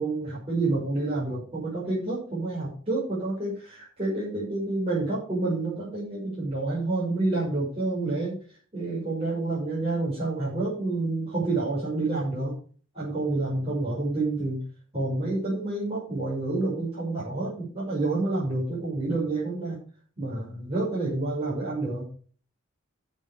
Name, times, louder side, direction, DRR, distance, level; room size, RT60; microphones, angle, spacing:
voice 1, 0.0-8.3 8.7-12.5 12.9-14.6 14.9-19.8 20.2-22.0, right 2 dB, 30° right, -8 dB, 6.3 m, -28 dB
12.5 x 7.7 x 5.1 m, 0.42 s
head